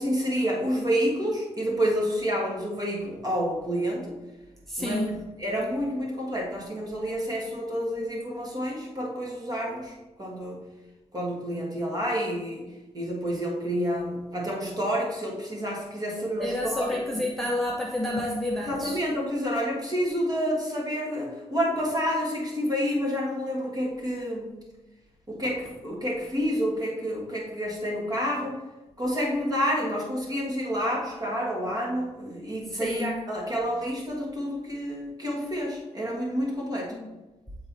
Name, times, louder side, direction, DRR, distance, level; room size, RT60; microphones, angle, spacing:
voice 1, 0.0-4.1 4.8-5.1 5.4-10.6 11.1-12.6 12.9-17.2 18.6-24.5 25.3-28.5 29.0-36.9, equal, 30° right, -3 dB, 1.6 m, -29 dB
voice 2, 4.7-5.2 16.4-19.0 32.8-33.1 36.9-37.1, left 1 dB, ahead, -3 dB, 0.6 m, -29 dB
7.7 x 3.9 x 4.0 m, 1.1 s
wide cardioid pair, 175°, 12 cm